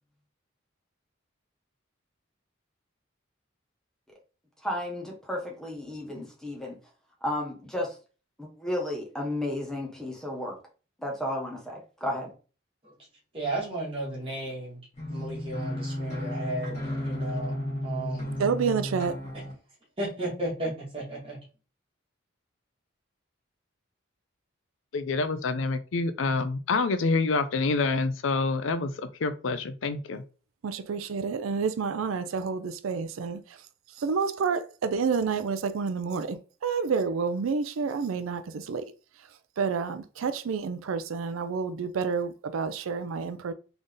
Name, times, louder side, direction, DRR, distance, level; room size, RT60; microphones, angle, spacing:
voice 1, 4.6-6.8 7.2-8.0 8.4-10.6 11.0-12.3, left 1 dB, 5° left, 1.1 m, -33 dB
voice 2, 13.3-14.8 15.1-16.8 17.0-18.3 19.3-19.4 20.0-21.4, right 1 dB, 25° right, 1.9 m, -34 dB
sound 1, 14.9-19.5, left 1 dB, 35° left, 2.2 m, -33 dB
voice 3, 18.4-19.2 30.6-33.4 34.0-38.8 39.6-43.5, right 5 dB, 90° right, 0.4 m, -29 dB
voice 4, 24.9-30.2, left 3 dB, 75° left, 0.5 m, -27 dB
3.9 x 3.4 x 3.7 m
head